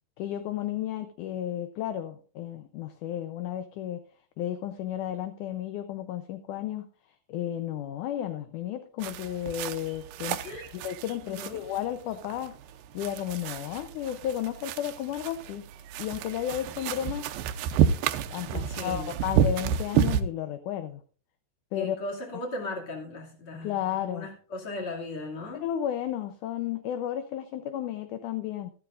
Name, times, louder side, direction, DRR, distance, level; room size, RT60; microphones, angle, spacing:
voice 1, 0.2-4.0 4.4-6.9 7.3-10.4 10.7-12.5 12.9-15.6 16.0-17.3 18.3-21.0 21.7-22.0 23.6-24.3 25.6-28.7, left 11 dB, 75° left, 8 dB, 2.0 m, -33 dB
sound 1, 9.0-20.2, right 8 dB, 80° right, 2.3 m, -30 dB
voice 2, 11.2-11.6 18.5-19.1 21.8-23.7 24.0-25.6, left 2 dB, 40° left, 0 dB, 2.9 m, -37 dB
14.0 x 13.5 x 2.5 m, 0.40 s
omnidirectional pair, 4.1 m